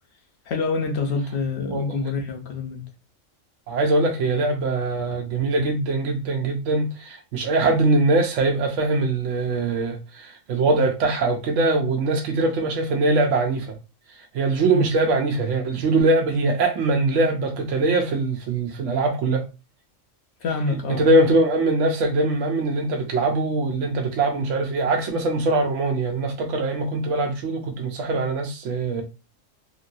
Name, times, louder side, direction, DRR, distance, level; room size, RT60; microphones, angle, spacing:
voice 1, 0.5-2.8 14.7-14.8 20.4-21.1, left 3 dB, 60° left, 0.8 m, -26 dB
voice 2, 3.7-13.8 14.3-19.4 20.9-29.0, right 2 dB, 70° right, 0.9 m, -22 dB
3.0 x 2.8 x 2.6 m
omnidirectional pair, 1.3 m